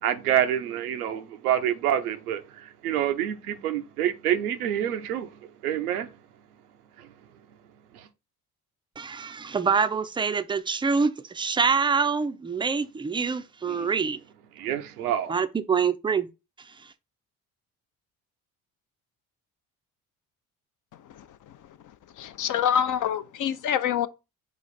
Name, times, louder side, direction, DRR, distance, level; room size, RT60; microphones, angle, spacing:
voice 1, 0.0-5.3 5.6-6.1 7.0-7.1 7.9-8.1 13.7-13.9 14.6-15.3, right 10 dB, 90° right, 0.6 m, -27 dB
voice 2, 9.0-14.2 15.3-16.3 16.6-16.9, right 5 dB, 10° right, 0.4 m, -26 dB
voice 3, 22.2-24.1, left 9 dB, 45° left, 0.6 m, -25 dB
5.0 x 2.4 x 4.0 m
hypercardioid pair, 50°, 44 cm